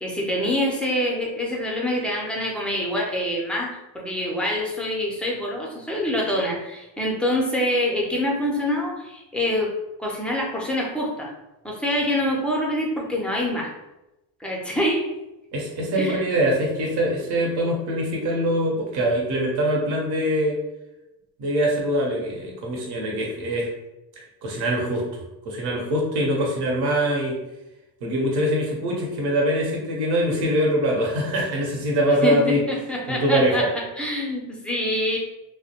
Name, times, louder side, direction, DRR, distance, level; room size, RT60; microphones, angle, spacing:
voice 1, 0.0-9.7 10.0-11.3 11.6-13.7 14.4-15.1 16.0-16.2 32.2-35.2, left 1 dB, ahead, -2 dB, 0.5 m, -25 dB
voice 2, 15.5-20.6 21.4-23.7 24.4-27.4 28.0-32.6 33.1-33.7, equal, 50° right, -2 dB, 0.8 m, -23 dB
2.2 x 2.1 x 2.8 m, 0.97 s
supercardioid pair, 90°, 50 cm